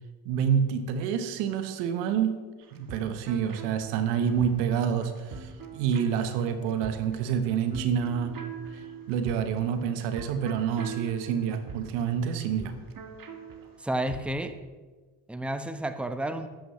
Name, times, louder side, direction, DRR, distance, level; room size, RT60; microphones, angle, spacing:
voice 1, 0.2-2.5 2.7-8.4 8.7-12.7, right 8 dB, 80° right, 9 dB, 1.2 m, -28 dB
sound 1, 2.6-14.3, right 6 dB, 45° right, 1.6 m, -43 dB
voice 2, 13.8-14.6 15.3-16.5, right 1 dB, ahead, 9 dB, 1.0 m, -31 dB
14.0 x 11.5 x 3.2 m, 1.3 s
hypercardioid pair, 50°, 49 cm